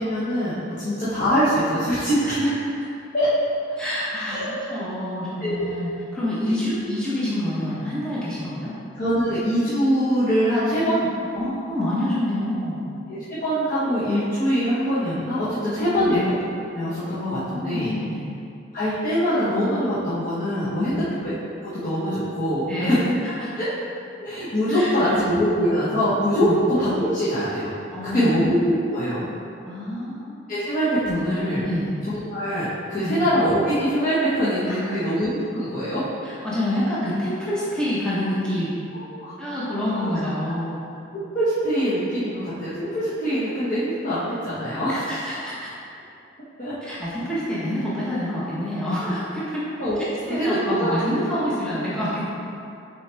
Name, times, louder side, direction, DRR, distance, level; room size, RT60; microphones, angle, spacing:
voice 1, 0.0-2.5 3.1-3.3 4.2-4.7 5.4-5.7 6.4-6.5 9.0-11.0 13.1-16.3 16.7-17.9 18.7-21.3 21.6-23.1 23.6-23.7 24.2-27.7 28.0-29.3 30.5-31.6 32.1-36.0 39.1-39.3 40.4-40.5 41.1-45.1 46.6-46.7 49.8-51.3, equal, 45° left, -13 dB, 1.2 m, -23 dB
voice 2, 3.8-4.4 4.7-8.7 10.9-11.1 11.3-12.9 15.7-16.2 17.5-18.2 20.8-21.0 22.7-23.0 23.2-23.3 24.7-25.2 26.4-26.6 27.9-28.4 29.6-30.5 31.0-31.2 31.6-31.9 33.0-33.2 34.7-35.0 36.4-38.7 39.4-40.7 44.9-45.7 46.8-49.6 50.3-52.2, left 1 dB, 5° left, -10 dB, 1.0 m, -27 dB
5.9 x 4.8 x 3.4 m, 2.6 s
head